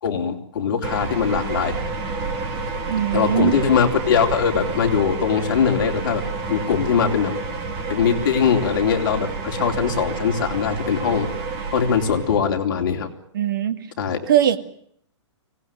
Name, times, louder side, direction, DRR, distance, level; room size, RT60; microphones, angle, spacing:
voice 1, 0.0-1.8 3.1-6.2 6.5-7.3 7.9-11.3 11.7-13.1 14.0-14.3, left 7 dB, 45° left, 3 dB, 3.7 m, -21 dB
sound 1, 0.8-12.4, right 4 dB, 25° right, 2.6 m, -29 dB
voice 2, 2.9-3.5 13.3-13.9 14.3-14.6, right 10 dB, 45° right, 9 dB, 2.1 m, -20 dB
25.0 x 18.5 x 9.2 m, 0.66 s
hypercardioid pair, 175°, 15 cm